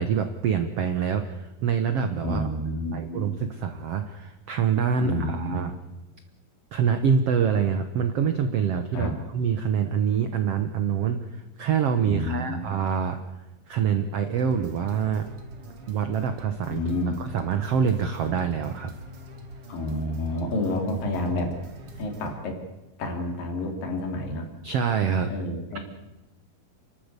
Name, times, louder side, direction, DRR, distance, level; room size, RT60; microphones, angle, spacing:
voice 1, 0.0-2.5 2.9-5.7 6.7-13.2 13.7-15.3 15.9-16.8 17.2-18.9 24.6-25.3, right 7 dB, 80° right, 8 dB, 1.3 m, -25 dB
voice 2, 2.2-3.3 5.0-5.6 8.9-9.2 12.0-12.6 16.7-17.2 19.7-21.5 22.0-22.6 23.0-24.5 25.3-25.8, left 1 dB, 65° left, 4 dB, 4.6 m, -29 dB
sound 1, 14.4-22.4, equal, 45° right, 2.5 m, -44 dB
29.5 x 12.5 x 8.2 m, 1.0 s
omnidirectional pair, 4.4 m